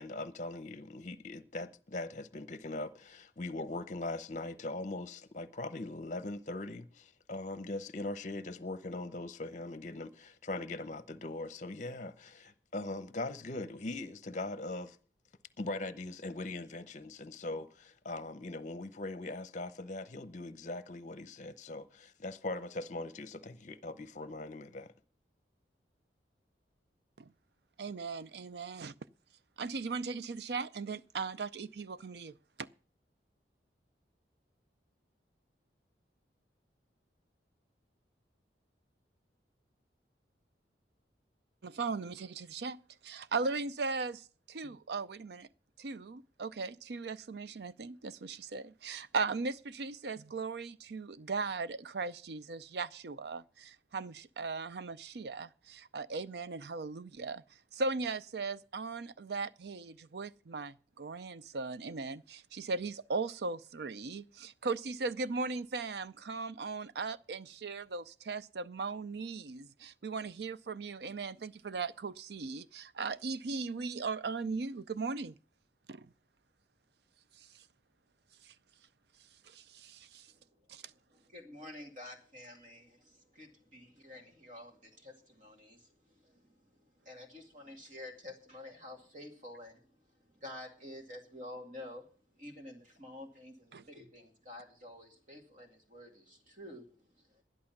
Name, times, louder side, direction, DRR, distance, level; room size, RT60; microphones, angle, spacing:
voice 1, 0.0-15.0 15.6-24.9, left 2 dB, 45° left, 0.8 m, -41 dB
voice 2, 27.8-28.9 29.6-32.3 32.6-32.7 41.6-45.5 45.8-57.4 57.7-75.3 75.9-76.1 79.5-80.3 80.7-80.8 93.7-93.8, right 4 dB, 65° right, 0.5 m, -38 dB
voice 3, 81.1-86.6 87.0-89.9 90.4-92.0 92.4-96.9 97.2-97.4, left 1 dB, 45° right, 2.4 m, -49 dB
12.0 x 11.0 x 5.9 m
head